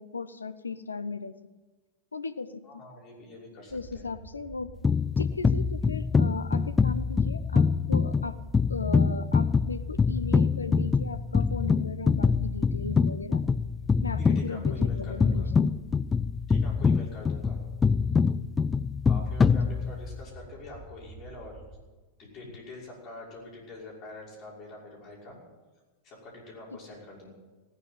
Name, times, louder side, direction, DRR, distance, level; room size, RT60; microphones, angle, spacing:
voice 1, 0.0-1.4 2.1-2.8 3.7-4.8 5.2-8.4 8.7-13.4 14.0-15.7 19.5-19.6 26.7-26.8, left 4 dB, 75° left, 13 dB, 0.7 m, -36 dB
voice 2, 2.6-4.1 14.2-15.5 16.5-17.6 19.0-21.6 22.2-25.4 26.0-27.3, left 2 dB, 35° left, -3 dB, 5.9 m, -45 dB
sound 1, 3.7-21.8, right 3 dB, 20° right, 2.7 m, -48 dB
sound 2, 4.8-20.2, left 5 dB, 15° left, 0.4 m, -25 dB
16.5 x 10.0 x 7.6 m, 1.3 s
figure-of-eight pair, 90°, 0 cm